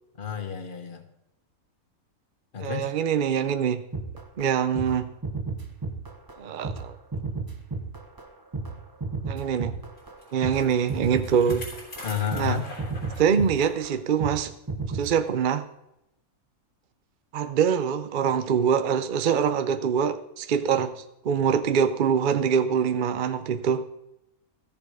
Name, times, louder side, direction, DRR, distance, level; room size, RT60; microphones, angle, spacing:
voice 1, 0.2-1.0 2.5-2.9 12.0-12.7, left 7 dB, 40° left, 7 dB, 1.2 m, -30 dB
voice 2, 2.6-3.8 4.4-5.1 6.4-6.9 9.3-9.8 10.3-11.7 12.3-12.6 13.2-14.5 14.9-15.6 17.3-20.9 21.2-23.8, right 7 dB, 55° right, 9 dB, 0.5 m, -24 dB
sound 1, 3.9-4.5 4.7-5.0 5.2-6.4 6.6-14.4 14.7-15.1, right 3 dB, 20° right, 0.8 m, -33 dB
Bicycle, 10.0-13.9 14.3-14.4 15.2-15.3, left 2 dB, 75° left, 3.8 m, -44 dB
14.0 x 7.1 x 4.8 m, 0.85 s
omnidirectional pair, 1.5 m